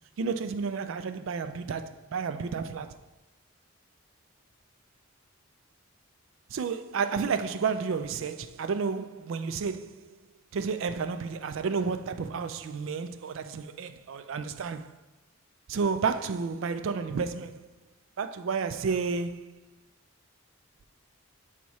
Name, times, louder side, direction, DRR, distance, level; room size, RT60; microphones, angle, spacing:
voice 1, 0.2-3.0 6.5-10.0 10.5-14.9 15.7-17.7 18.2-19.5, right 5 dB, 60° right, 0.4 m, -31 dB
5.9 x 4.1 x 4.6 m
head